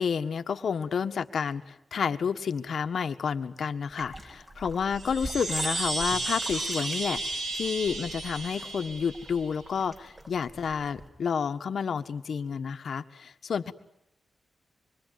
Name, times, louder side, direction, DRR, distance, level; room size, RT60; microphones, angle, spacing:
voice 1, 0.0-13.7, left 6 dB, 70° left, 8 dB, 1.5 m, -30 dB
sound 1, 3.9-11.1, right 1 dB, 25° right, 5.6 m, -45 dB
Chime, 4.9-9.6, right 2 dB, 65° right, 3.1 m, -33 dB
26.0 x 23.5 x 9.5 m, 0.81 s
wide cardioid pair, 100°, 0 cm